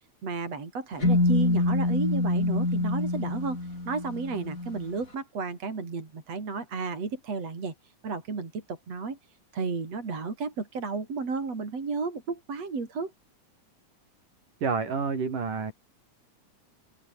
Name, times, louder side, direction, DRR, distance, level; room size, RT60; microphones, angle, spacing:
voice 1, 0.2-3.6 3.9-7.7 8.0-9.2 9.5-13.1, right 4 dB, 50° right, 5.5 m, -33 dB
sound 1, 1.0-4.9, left 2 dB, 25° left, 6.1 m, -26 dB
voice 2, 14.6-15.7, right 5 dB, 85° right, 6.6 m, -28 dB
omnidirectional pair, 3.6 m